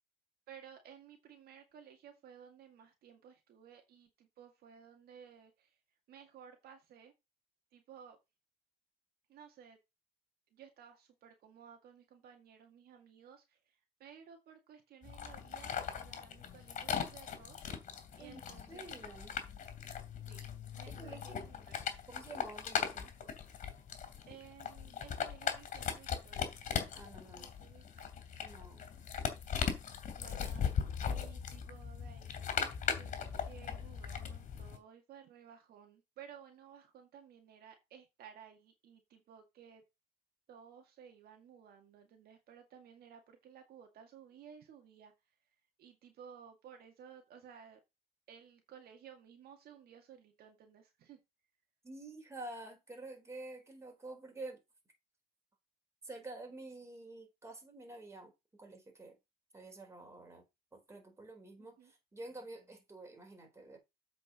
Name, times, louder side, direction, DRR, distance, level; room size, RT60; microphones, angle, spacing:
voice 1, 0.5-5.8 6.1-7.1 7.7-8.2 9.3-9.8 10.5-17.6 18.2-18.9 20.3-20.5 20.7-21.8 24.3-26.6 27.3-28.1 30.2-30.7 31.1-32.5 33.0-39.8 40.5-45.1 45.8-47.8 48.3-51.2 61.6-61.9, right 8 dB, 65° right, 2.0 m, -56 dB
sound 1, 15.0-34.8, left 7 dB, 50° left, 2.9 m, -39 dB
voice 2, 18.7-19.3 20.9-21.4 22.1-23.1 26.9-27.5 28.4-28.8 51.8-54.6 56.0-58.3 58.6-59.2 59.5-60.4 60.7-63.8, right 2 dB, 15° right, 4.2 m, -49 dB
8.0 x 5.1 x 6.2 m
cardioid pair, 110°, 17 cm